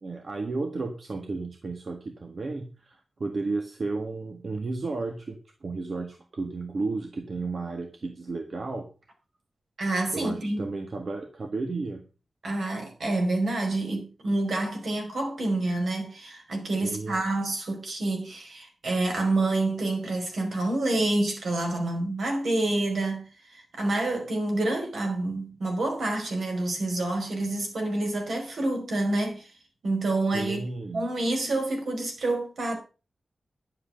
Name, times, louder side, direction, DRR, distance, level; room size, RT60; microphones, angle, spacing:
voice 1, 0.0-8.9 10.1-12.0 16.8-17.3 30.3-31.0, right 3 dB, 45° right, 1.6 m, -33 dB
voice 2, 9.8-10.6 12.4-23.2 23.5-29.5 29.8-30.6 30.9-32.8, right 2 dB, 70° right, 5.1 m, -28 dB
11.0 x 8.0 x 6.4 m
wide cardioid pair, 170°, 0 cm